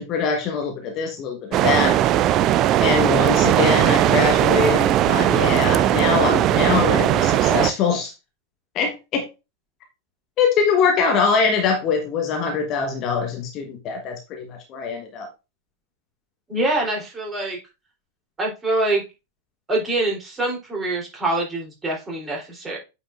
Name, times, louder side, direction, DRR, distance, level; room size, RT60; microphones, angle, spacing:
voice 1, 0.0-2.0 2.8-8.1 8.7-9.3 10.4-15.3, left 5 dB, 35° left, 3 dB, 1.4 m, -23 dB
sound 1, 1.5-7.7, right 12 dB, 35° right, 0.4 m, -18 dB
voice 2, 16.5-17.6 18.4-19.0 19.7-22.8, right 2 dB, 15° right, -2 dB, 3.5 m, -24 dB
8.9 x 5.1 x 2.6 m, 0.27 s
figure-of-eight pair, 90°, 0 cm